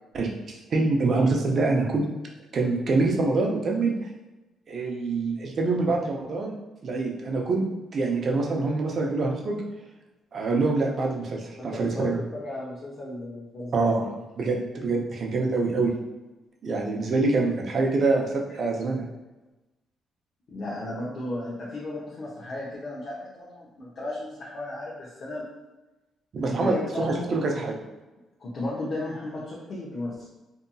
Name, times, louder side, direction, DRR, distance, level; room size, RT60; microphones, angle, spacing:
voice 1, 0.1-2.1 2.5-3.9 4.7-6.6 6.8-7.6 7.9-9.6 10.3-12.2 13.7-14.1 14.4-15.9 16.6-19.1 26.3-27.8, right 3 dB, 50° right, 0 dB, 0.5 m, -25 dB
voice 2, 11.6-14.1 20.5-25.4 26.5-27.3 28.4-30.3, left 2 dB, 55° left, -6 dB, 0.6 m, -34 dB
2.8 x 2.6 x 2.2 m, 1.1 s
cardioid pair, 90°, 0 cm